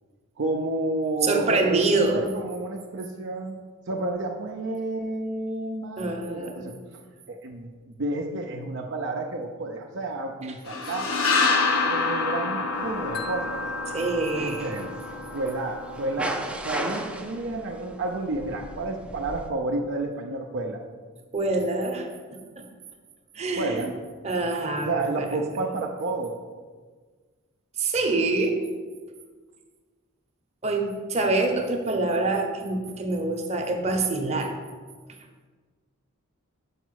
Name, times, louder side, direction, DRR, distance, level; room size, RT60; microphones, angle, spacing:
voice 1, 0.4-6.7 7.3-11.2 11.8-13.6 14.4-14.9 15.3-20.8 23.6-23.9 24.8-26.4, right 2 dB, 60° right, 1 dB, 0.6 m, -30 dB
voice 2, 1.2-2.3 6.0-6.7 13.9-14.8 21.3-22.1 22.6-22.7 23.3-23.8 24.2-25.4 27.8-28.6 30.6-34.5, right 3 dB, 30° right, 3 dB, 0.9 m, -26 dB
sound 1, 10.7-16.3, left 4 dB, 80° left, 1.1 m, -27 dB
sound 2, 12.7-19.5, right 1 dB, 5° right, 0.5 m, -38 dB
Wind chime, 13.1-16.3, left 1 dB, 50° left, 0.7 m, -40 dB
5.9 x 5.0 x 6.3 m, 1.5 s
head